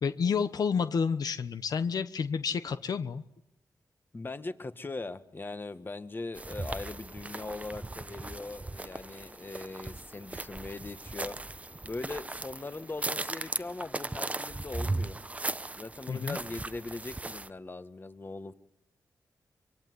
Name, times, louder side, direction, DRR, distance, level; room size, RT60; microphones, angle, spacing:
voice 1, 0.0-3.2 16.1-16.4, left 6 dB, 75° left, 11 dB, 1.1 m, -30 dB
voice 2, 4.1-11.4 11.8-15.2 15.8-18.5, left 3 dB, 30° left, 11 dB, 1.7 m, -40 dB
sound 1, 6.4-17.5, right 2 dB, 20° right, 1.0 m, -38 dB
24.5 x 24.0 x 9.7 m, 0.82 s
cardioid pair, 75°, 7 cm